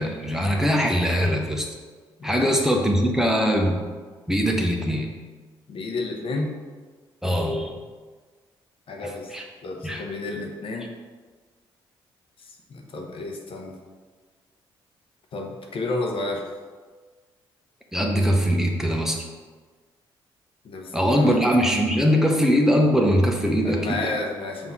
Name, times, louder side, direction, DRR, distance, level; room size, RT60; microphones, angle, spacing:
voice 1, 0.0-1.7 2.2-3.8 4.3-5.1 7.2-7.7 9.3-9.4 9.8-10.0 17.9-19.2 20.9-24.1, equal, 5° right, 1 dB, 1.0 m, -21 dB
voice 2, 2.2-2.5 5.7-6.6 8.9-9.3 9.6-10.9 12.4-13.8 15.3-16.5 20.6-21.5 23.6-24.7, left 2 dB, 60° left, 1 dB, 1.1 m, -31 dB
5.8 x 3.0 x 5.6 m, 1.4 s
supercardioid pair, 60°, 10 cm